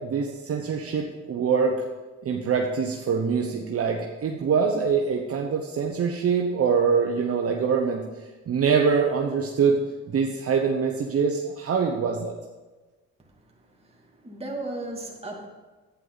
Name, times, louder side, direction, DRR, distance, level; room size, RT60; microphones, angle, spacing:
voice 1, 0.0-1.7 2.2-8.0 8.5-9.8 10.1-12.3, right 6 dB, 50° right, 1 dB, 1.0 m, -24 dB
voice 2, 13.6-15.5, right 2 dB, 20° right, -1 dB, 2.6 m, -36 dB
11.0 x 9.5 x 4.1 m, 1.3 s
cardioid pair, 90°, 30 cm